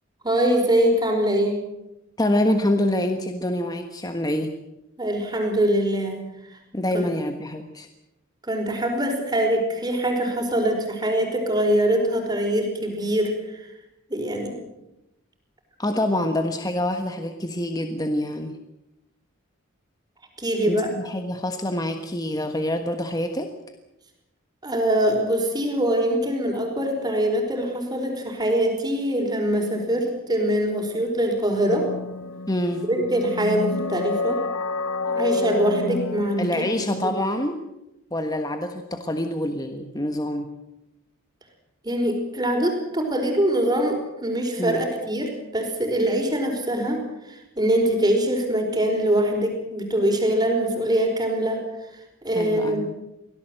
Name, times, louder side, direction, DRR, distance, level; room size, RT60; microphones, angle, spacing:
voice 1, 0.2-1.6 5.0-6.2 6.9-7.1 8.4-13.6 14.1-14.5 20.4-20.9 24.6-31.8 32.8-34.4 35.1-37.1 41.8-47.0 47.3-51.6 52.2-52.9, right 1 dB, 20° right, 3 dB, 4.9 m, -23 dB
voice 2, 2.2-4.5 6.7-7.9 15.8-18.6 20.7-23.5 32.5-32.9 36.4-37.6 38.1-40.5 44.6-44.8 52.3-52.9, left 1 dB, 20° left, 6 dB, 1.3 m, -26 dB
sound 1, 31.7-37.1, left 3 dB, 90° left, 0.8 m, -29 dB
24.5 x 17.5 x 7.8 m, 0.92 s
head